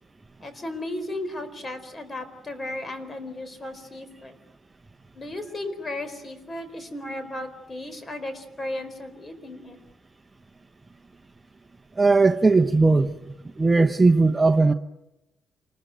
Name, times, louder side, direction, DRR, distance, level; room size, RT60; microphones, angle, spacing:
voice 1, 0.4-4.4 5.1-9.8, left 1 dB, 25° left, 12 dB, 4.5 m, -35 dB
voice 2, 12.0-14.7, right 3 dB, 20° right, 8 dB, 0.9 m, -19 dB
28.0 x 20.5 x 9.3 m, 0.95 s
cardioid pair, 90°, 0 cm